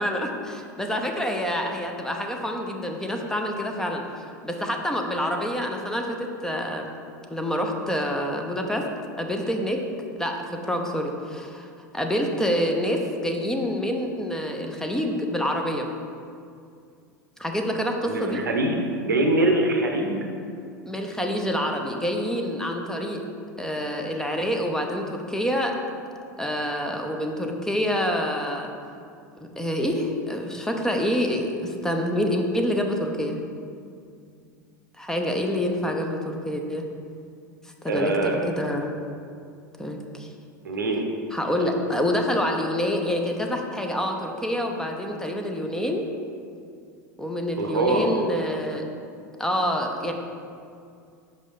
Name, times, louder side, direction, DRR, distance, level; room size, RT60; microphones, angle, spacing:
voice 1, 0.0-6.9 7.3-8.9 9.2-9.8 10.2-11.7 11.9-15.9 17.4-18.5 20.9-23.2 23.6-25.8 26.4-28.7 29.3-33.4 35.0-36.8 37.6-38.9 39.8-40.3 41.3-46.1 47.2-48.8 49.4-50.1, equal, 5° left, 2 dB, 0.6 m, -27 dB
voice 2, 18.1-18.8 19.0-20.3 37.9-38.4 40.6-41.1 41.6-41.7 47.6-48.2, right 2 dB, 85° right, 2 dB, 0.7 m, -23 dB
5.5 x 4.9 x 3.9 m, 2.4 s
hypercardioid pair, 85°, 10 cm